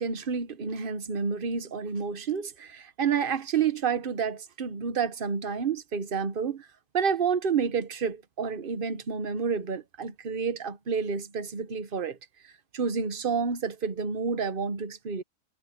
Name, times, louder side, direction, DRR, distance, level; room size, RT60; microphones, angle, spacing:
voice 1, 0.0-6.7 6.9-12.2 12.7-15.2, right 6 dB, 40° right, 1.1 m, -29 dB
omnidirectional pair, 1.5 m